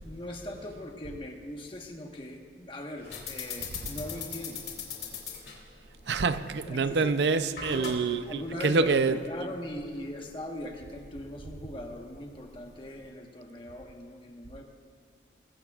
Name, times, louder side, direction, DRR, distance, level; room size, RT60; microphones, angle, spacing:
voice 1, 0.0-4.6 6.6-7.2 7.7-14.6, left 1 dB, 30° left, 1.3 m, -40 dB
sound 1, 3.0-13.1, left 6 dB, 70° left, 2.3 m, -43 dB
voice 2, 6.1-9.2, right 4 dB, 80° right, 0.5 m, -26 dB
22.0 x 15.0 x 2.4 m
head